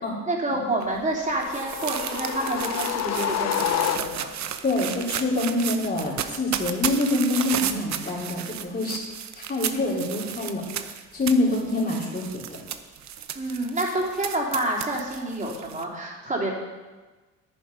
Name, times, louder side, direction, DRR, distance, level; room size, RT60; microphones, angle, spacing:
voice 1, 0.3-4.3 13.3-16.5, right 2 dB, 25° right, -3 dB, 3.6 m, -28 dB
sound 1, 0.8-15.8, right 9 dB, 65° right, 0.9 m, -34 dB
sound 2, 1.3-4.5, left 10 dB, 60° left, 0.7 m, -28 dB
voice 2, 4.6-9.0 9.3-10.6 11.1-12.4, left 2 dB, 30° left, -5 dB, 3.9 m, -25 dB
10.5 x 9.5 x 5.7 m, 1.3 s
cardioid pair, 90°, 30 cm